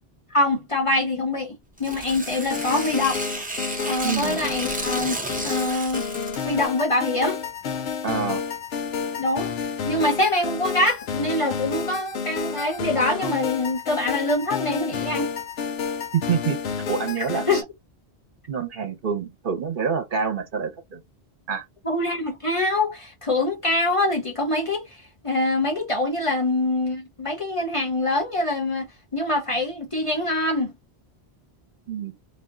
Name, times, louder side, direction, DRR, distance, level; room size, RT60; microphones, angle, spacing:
voice 1, 0.3-3.2 3.9-6.0 6.4-7.4 9.2-9.5 9.8-15.3 17.3-17.6 21.8-24.8 25.2-30.7, left 2 dB, 35° left, 0.6 m, -24 dB
Tearing, 1.8-6.6, right 1 dB, 10° right, 0.5 m, -32 dB
sound 1, 2.5-17.6, left 6 dB, 75° left, 0.8 m, -30 dB
voice 2, 4.0-4.4 8.0-8.4 16.1-16.6 16.9-17.6 18.5-21.0 21.5-21.6 31.9-32.1, right 6 dB, 60° right, 0.8 m, -26 dB
2.4 x 2.2 x 3.5 m
omnidirectional pair, 1.1 m